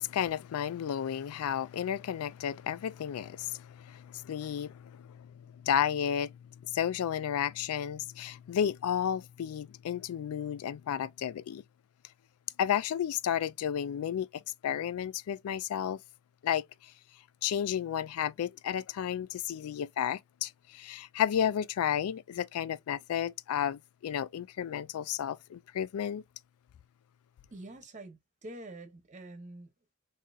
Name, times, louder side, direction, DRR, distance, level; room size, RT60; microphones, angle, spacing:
voice 1, 0.0-6.3 6.6-11.6 12.6-16.0 16.4-16.6 17.4-26.2, left 9 dB, 90° left, 0.3 m, -32 dB
voice 2, 27.5-29.7, right 1 dB, 35° right, 0.9 m, -46 dB
3.7 x 2.7 x 2.3 m
head